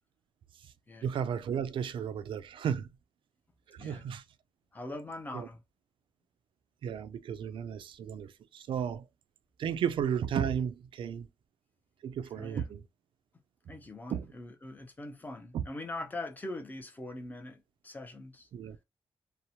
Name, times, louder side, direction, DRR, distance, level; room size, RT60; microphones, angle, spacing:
voice 1, 1.0-2.9 3.7-4.2 5.3-5.5 6.8-9.0 9.6-11.3 12.0-12.8 14.1-14.3 15.5-15.6 18.5-18.8, right 8 dB, 65° right, 0.3 m, -33 dB
voice 2, 3.8-4.1 4.7-5.6 12.3-12.7 13.7-18.5, left 2 dB, 20° left, 0.5 m, -42 dB
2.8 x 2.0 x 2.7 m
wide cardioid pair, 125°, 9 cm